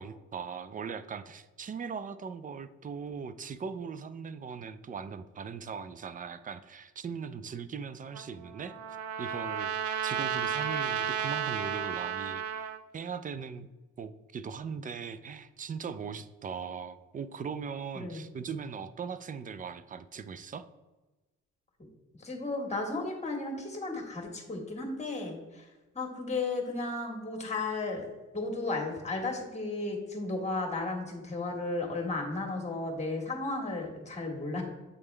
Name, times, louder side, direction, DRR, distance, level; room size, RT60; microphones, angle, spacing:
voice 1, 0.0-8.7 9.2-9.7 10.0-13.7 14.0-20.7, right 6 dB, 30° right, 12 dB, 0.3 m, -39 dB
Trumpet, 8.1-12.8, right 8 dB, 80° right, 0.5 m, -33 dB
voice 2, 22.2-25.7 25.9-28.1 28.3-34.6, left 2 dB, 20° left, 2 dB, 1.5 m, -34 dB
8.2 x 3.5 x 3.3 m, 1.1 s
cardioid pair, 90°, 30 cm